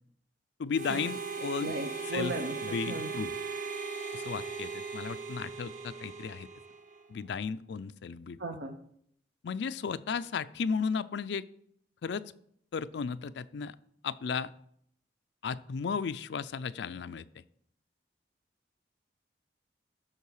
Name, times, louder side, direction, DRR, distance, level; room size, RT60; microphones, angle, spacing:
voice 1, 0.6-1.7 2.0-2.4 2.6-3.3 4.1-6.5 7.1-8.4 9.4-11.4 12.0-12.2 12.7-13.8 14.0-14.5 15.4-17.3, left 5 dB, 75° left, 14 dB, 0.4 m, -34 dB
Harmonica, 0.7-7.1, right 4 dB, 45° right, 0.9 m, -38 dB
voice 2, 1.6-3.1 8.4-8.7, right 1 dB, 85° right, 3 dB, 0.8 m, -36 dB
12.5 x 4.7 x 4.8 m, 0.68 s
head